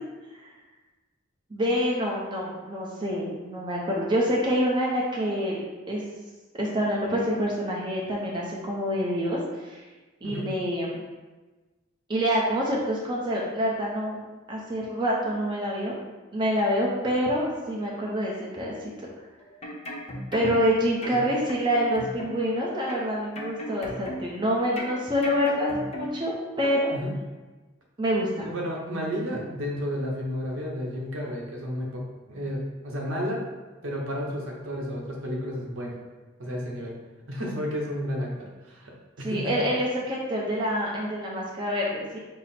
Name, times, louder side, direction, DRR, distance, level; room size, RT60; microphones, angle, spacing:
voice 1, 1.5-6.0 6.6-9.8 10.2-11.0 12.1-15.9 16.3-18.9 20.3-26.9 28.0-28.5 39.2-42.2, equal, 25° right, -4 dB, 0.6 m, -27 dB
sound 1, 19.4-20.7 21.0-22.5 22.9-24.4 24.8-26.3 26.6-26.8, equal, 30° left, 0.7 m, -37 dB
voice 2, 28.4-32.0 32.3-33.4 33.8-35.9 36.4-36.9 37.3-38.9 39.2-39.6, equal, 75° right, -2 dB, 0.9 m, -32 dB
5.6 x 2.0 x 4.2 m, 1.2 s
head